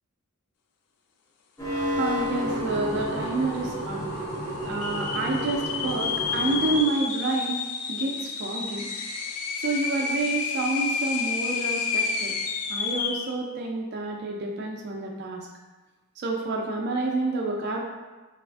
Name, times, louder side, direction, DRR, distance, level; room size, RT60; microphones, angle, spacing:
sound 1, 1.6-6.8, equal, 15° left, 0.6 m, -31 dB
voice 1, 2.0-4.1 4.7-7.6 7.9-8.9 9.6-12.4 12.7-15.5 16.2-17.8, right 2 dB, 50° right, 0 dB, 0.4 m, -29 dB
sound 2, 2.4-2.5 2.7-3.3 3.8-3.9 4.6-13.3, left 5 dB, 75° left, 0.3 m, -30 dB
4.1 x 2.4 x 2.3 m, 1.2 s
head